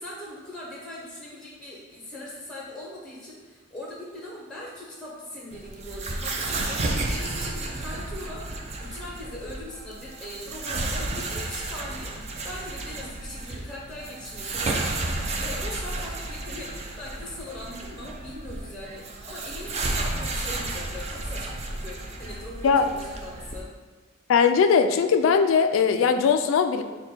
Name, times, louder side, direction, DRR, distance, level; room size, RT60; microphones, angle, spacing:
voice 1, 0.0-23.7, left 1 dB, 5° left, -4 dB, 0.7 m, -40 dB
sound 1, 5.5-23.6, right 2 dB, 30° right, 0.4 m, -32 dB
voice 2, 24.3-26.8, left 6 dB, 70° left, 9 dB, 0.3 m, -20 dB
5.0 x 2.2 x 4.3 m, 1.3 s
head